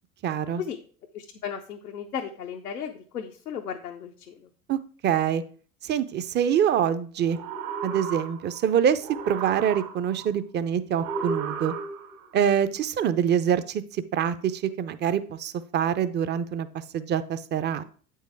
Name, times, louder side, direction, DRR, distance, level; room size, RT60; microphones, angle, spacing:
voice 1, 0.2-0.6 4.7-5.4 5.8-7.4 7.8-11.7 12.3-17.8, right 8 dB, 25° right, 13 dB, 0.5 m, -25 dB
voice 2, 1.1-4.5, left 8 dB, 90° left, 2 dB, 0.8 m, -35 dB
sound 1, 7.2-8.7 9.0-10.3 11.0-12.3, right 5 dB, 70° right, 2.1 m, -33 dB
8.1 x 4.6 x 4.6 m, 0.42 s
hypercardioid pair, 85°, 45 cm